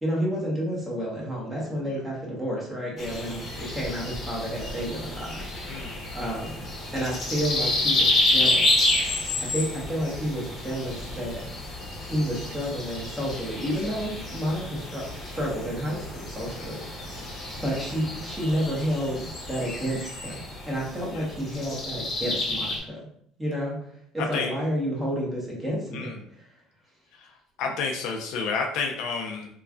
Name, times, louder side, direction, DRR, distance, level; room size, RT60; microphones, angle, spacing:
voice 1, 0.0-6.6 6.9-8.9 9.4-11.4 12.0-17.1 17.6-20.4 20.7-23.0 23.4-23.8 24.1-26.1, equal, 10° right, -4 dB, 1.1 m, -30 dB
sound 1, 3.0-22.8, left 2 dB, 35° left, 0.9 m, -29 dB
voice 2, 24.2-24.5 25.9-26.1 27.6-29.5, left 5 dB, 70° left, 2 dB, 0.4 m, -30 dB
3.1 x 2.2 x 2.4 m, 0.69 s
supercardioid pair, 95°, 0 cm